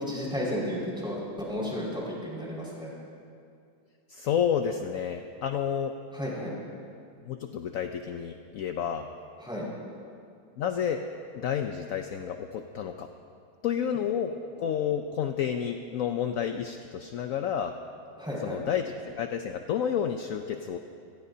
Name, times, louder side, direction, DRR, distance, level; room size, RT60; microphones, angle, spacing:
voice 1, 0.1-1.2 1.5-2.9 6.1-6.5 9.4-9.7 18.2-18.6, equal, ahead, -6 dB, 5.1 m, -33 dB
voice 2, 4.1-5.9 7.3-9.1 10.6-11.0 11.3-13.1 13.6-17.7 18.4-20.8, left 8 dB, 65° left, 6 dB, 0.9 m, -30 dB
27.0 x 19.0 x 2.8 m, 2.4 s
omnidirectional pair, 2.0 m